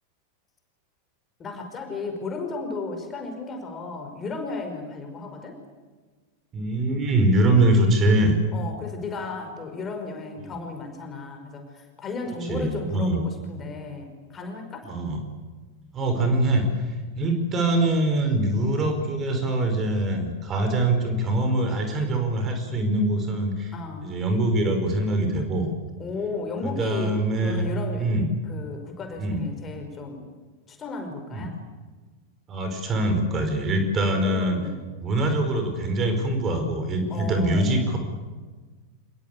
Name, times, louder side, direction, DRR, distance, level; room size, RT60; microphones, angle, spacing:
voice 1, 1.4-5.6 8.5-14.9 23.7-24.1 26.0-27.2 27.4-28.1 28.4-30.3 30.7-31.6 34.1-34.8 37.1-37.8, left 3 dB, 25° left, 4 dB, 5.5 m, -34 dB
voice 2, 6.5-8.4 12.5-13.2 14.9-15.2 15.9-23.7 24.0-25.7 26.6-27.6 28.0-28.3 29.2-29.4 31.3-31.5 32.5-34.6 35.0-38.0, right 1 dB, 25° right, 5 dB, 5.1 m, -23 dB
26.5 x 21.0 x 8.6 m, 1.4 s
figure-of-eight pair, 90°, 0 cm